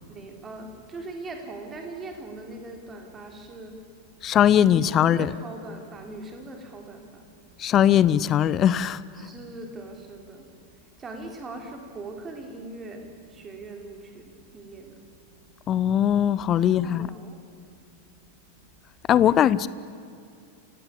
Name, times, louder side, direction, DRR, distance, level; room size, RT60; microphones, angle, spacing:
voice 1, 0.1-3.9 4.6-7.3 9.1-15.3 16.6-17.4 17.7-17.8 19.0-19.6, right 2 dB, 20° right, 3 dB, 3.9 m, -41 dB
voice 2, 4.2-5.3 7.6-9.0 15.7-17.1 19.1-19.7, left 10 dB, 30° left, 19 dB, 0.6 m, -20 dB
29.0 x 17.0 x 8.5 m, 2.5 s
figure-of-eight pair, 90°, 0 cm